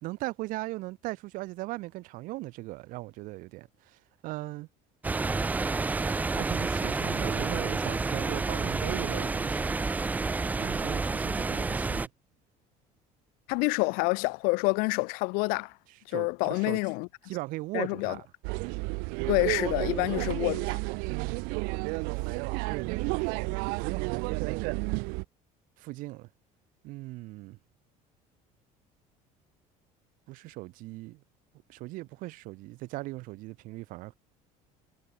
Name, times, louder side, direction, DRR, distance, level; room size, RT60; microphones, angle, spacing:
voice 1, 0.0-4.7 6.4-9.6 10.6-12.1 16.1-16.8 17.2-18.2 21.1-21.5 22.1-22.4 22.7-24.9 25.8-26.3 26.8-27.6 30.3-31.2 31.7-34.1, right 20 dB, 65° right, 1.2 m, -38 dB
sound 1, 5.0-12.1, right 3 dB, 10° right, 0.4 m, -29 dB
voice 2, 13.5-15.7 16.1-17.1 17.7-18.2 19.3-20.8, left 30 dB, 80° left, 0.4 m, -27 dB
sound 2, 18.4-25.2, right 32 dB, 85° right, 0.4 m, -31 dB
cardioid pair, 140°, 15 cm